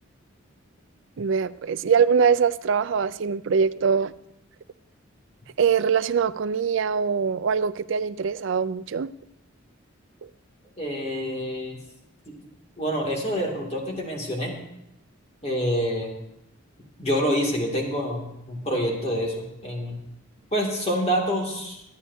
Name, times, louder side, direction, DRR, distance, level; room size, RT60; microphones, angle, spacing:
voice 1, 1.2-4.1 5.6-9.1, right 6 dB, 60° right, 14 dB, 0.4 m, -23 dB
voice 2, 10.8-11.8 12.8-14.5 15.4-16.1 17.0-20.0 20.5-21.8, equal, 30° left, 0 dB, 2.3 m, -27 dB
23.0 x 9.6 x 2.7 m, 0.83 s
head